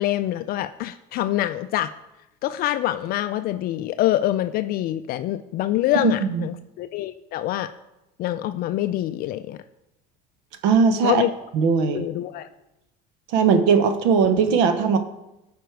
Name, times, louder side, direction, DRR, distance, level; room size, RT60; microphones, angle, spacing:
voice 1, 0.0-1.9 2.4-7.7 8.2-9.6 11.0-11.3 11.9-12.5, left 14 dB, 50° left, 11 dB, 0.4 m, -25 dB
voice 2, 6.0-6.4 10.6-11.2 11.5-12.0 13.3-15.0, right 6 dB, 75° right, 9 dB, 1.0 m, -19 dB
12.5 x 5.2 x 4.6 m, 0.94 s
supercardioid pair, 120°, 20 cm